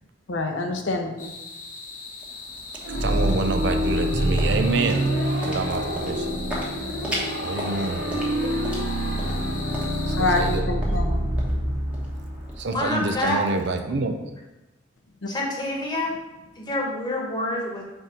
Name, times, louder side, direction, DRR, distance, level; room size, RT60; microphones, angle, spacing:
voice 1, 0.3-1.3 10.2-11.2, left 2 dB, 75° left, 3 dB, 0.7 m, -26 dB
sound 1, 1.2-10.6, left 3 dB, 45° left, 0.9 m, -39 dB
sound 2, 2.0-14.2, equal, 5° right, 1.1 m, -39 dB
sound 3, 2.8-12.6, equal, 85° right, 1.3 m, -26 dB
voice 2, 3.0-5.1 5.4-6.3 7.4-8.0 10.0-10.6 12.6-14.2, right 3 dB, 60° right, 6 dB, 0.5 m, -27 dB
voice 3, 12.7-13.6 15.3-16.1 16.5-17.8, left 1 dB, 20° left, -2 dB, 1.2 m, -27 dB
4.5 x 4.0 x 5.1 m, 1.0 s
head